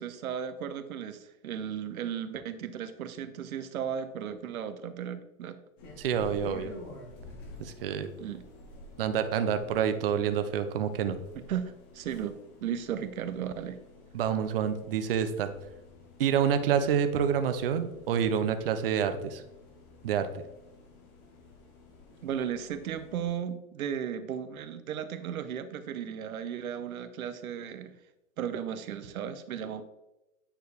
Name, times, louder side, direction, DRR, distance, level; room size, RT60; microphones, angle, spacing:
voice 1, 0.0-5.6 8.2-8.4 11.3-13.8 22.2-27.9 28.4-29.8, right 8 dB, 80° right, 12 dB, 0.9 m, -35 dB
sound 1, 5.8-23.4, left 2 dB, 15° left, 0.7 m, -51 dB
voice 2, 6.0-6.7 7.6-8.1 9.0-11.2 14.1-15.5 16.2-19.4 20.0-20.4, right 8 dB, 45° right, 9 dB, 0.6 m, -28 dB
9.1 x 4.6 x 3.4 m, 0.94 s
hypercardioid pair, 175°, 42 cm